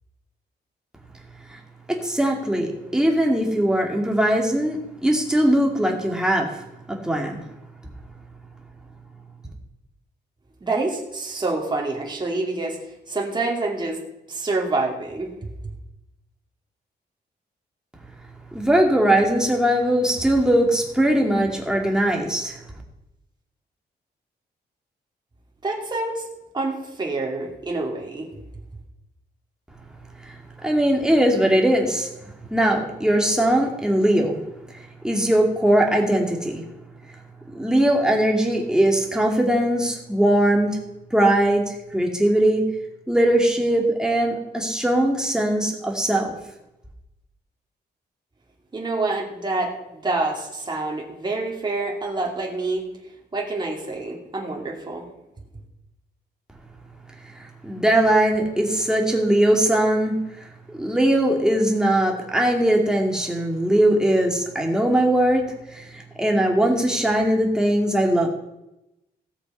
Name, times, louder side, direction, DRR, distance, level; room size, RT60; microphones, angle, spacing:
voice 1, 1.9-6.6 6.9-7.4 18.5-22.6 30.3-30.4 30.6-34.4 35.0-36.6 37.5-40.8 41.1-42.7 43.1-46.3 57.4-60.2 60.7-68.3, right 1 dB, 5° right, 0 dB, 2.5 m, -20 dB
voice 2, 10.6-12.8 13.1-14.0 14.3-15.3 25.6-26.2 26.5-28.3 48.7-52.8 53.3-55.0, right 2 dB, 25° right, -1 dB, 2.5 m, -27 dB
16.5 x 6.9 x 5.5 m, 0.90 s
cardioid pair, 115°, 18 cm